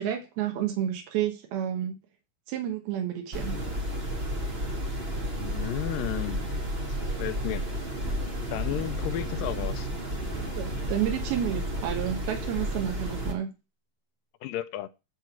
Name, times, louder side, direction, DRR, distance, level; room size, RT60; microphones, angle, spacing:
voice 1, 0.0-2.0 2.5-3.6 10.5-13.5, right 10 dB, 90° right, 3.2 m, -30 dB
sound 1, 3.3-13.3, equal, 30° right, 1.1 m, -32 dB
voice 2, 5.4-6.4 7.2-7.6 8.5-9.9 14.4-14.9, left 13 dB, 80° left, 2.2 m, -33 dB
sound 2, 8.0-12.7, right 1 dB, 55° left, 1.0 m, -46 dB
11.0 x 3.7 x 5.8 m
omnidirectional pair, 4.3 m